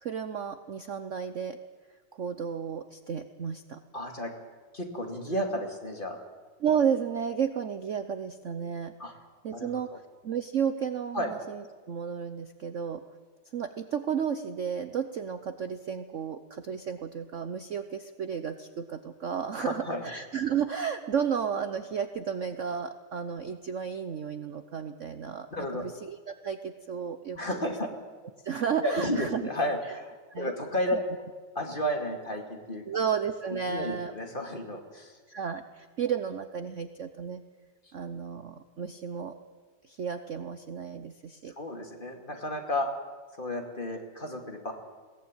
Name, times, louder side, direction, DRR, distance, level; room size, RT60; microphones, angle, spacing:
voice 1, 0.0-1.6 2.1-3.8 6.6-8.9 9.4-9.9 10.2-13.0 13.5-27.6 28.4-29.4 30.3-30.5 30.9-31.0 32.9-34.1 35.3-37.4 37.9-39.3 39.8-41.5, right 7 dB, 50° right, 9 dB, 1.0 m, -32 dB
voice 2, 3.9-4.3 4.7-6.2 9.0-9.1 9.5-10.0 11.1-11.3 19.6-20.0 25.5-25.9 27.3-27.9 28.8-31.0 31.5-32.8 33.5-35.2 41.6-42.9 43.4-44.7, equal, 25° left, 3 dB, 2.5 m, -32 dB
21.5 x 18.0 x 8.9 m, 1.5 s
omnidirectional pair, 2.0 m